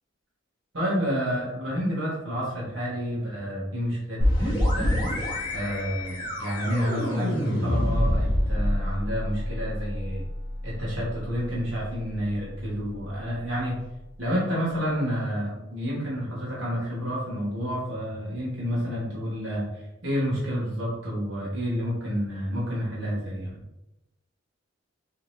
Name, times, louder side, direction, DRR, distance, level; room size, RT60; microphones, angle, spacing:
voice 1, 0.7-5.0 5.5-10.2 10.6-13.8 14.2-23.6, equal, 75° right, -6 dB, 1.1 m, -29 dB
sound 1, 4.2-13.8, left 1 dB, 25° left, 1.0 m, -28 dB
3.2 x 2.8 x 3.1 m, 0.96 s
head